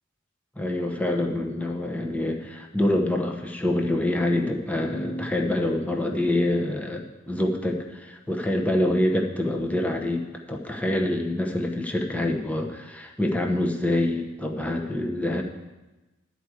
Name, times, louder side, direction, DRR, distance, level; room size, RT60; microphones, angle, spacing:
voice 1, 0.6-15.4, left 1 dB, 5° left, 1 dB, 0.9 m, -26 dB
12.0 x 4.7 x 8.2 m, 1.1 s
head